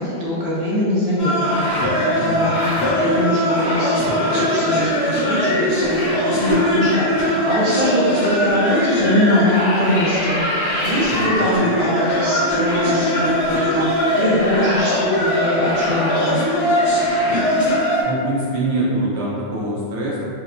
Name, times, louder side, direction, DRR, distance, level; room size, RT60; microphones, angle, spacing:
voice 1, 0.0-6.0 6.3-16.4, left 1 dB, 40° right, -8 dB, 0.7 m, -22 dB
sound 1, 1.2-18.0, equal, 70° left, 0.9 m, -20 dB
voice 2, 2.2-2.5 11.1-11.2 18.0-20.2, right 1 dB, 80° right, -6 dB, 0.8 m, -24 dB
2.8 x 2.2 x 2.5 m, 2.4 s
omnidirectional pair, 1.1 m